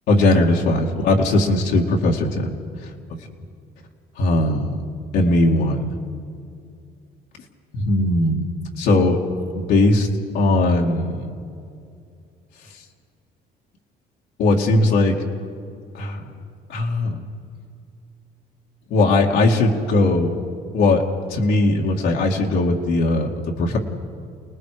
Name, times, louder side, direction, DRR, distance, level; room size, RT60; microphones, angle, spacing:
voice 1, 0.1-2.5 4.2-4.8 5.1-5.9 7.7-8.5 8.8-9.2 9.5-10.1 10.3-11.3 14.4-15.2 15.9-16.3 16.7-17.2 18.9-20.3 20.7-21.0 21.3-23.3 23.6-23.8, left 2 dB, 75° left, -1 dB, 2.3 m, -19 dB
29.0 x 19.0 x 5.1 m, 2.4 s
cardioid pair, 110°, 17 cm